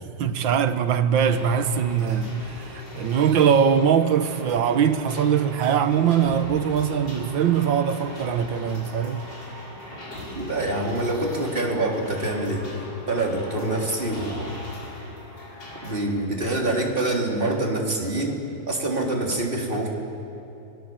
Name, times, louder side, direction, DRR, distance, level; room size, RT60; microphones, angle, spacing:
voice 1, 0.1-9.3, right 8 dB, 70° right, 1.8 m, -22 dB
sound 1, 1.1-15.9, left 2 dB, 60° left, 6.2 m, -39 dB
voice 2, 10.3-12.7 13.1-14.6 15.8-19.9, right 2 dB, 25° right, 3.6 m, -26 dB
29.5 x 22.5 x 7.8 m
omnidirectional pair, 2.2 m